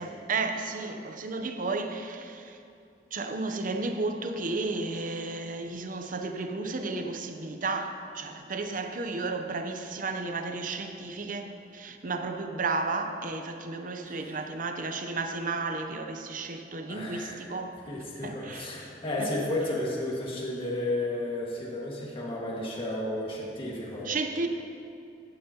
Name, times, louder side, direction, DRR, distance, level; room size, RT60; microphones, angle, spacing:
voice 1, 0.0-2.6 3.1-17.8 18.2-18.7 24.0-24.5, right 3 dB, 50° right, 6 dB, 0.7 m, -33 dB
voice 2, 14.1-14.4 16.9-17.4 17.9-24.1, left 1 dB, 30° left, -5 dB, 1.9 m, -33 dB
15.5 x 10.5 x 2.9 m, 2.5 s
head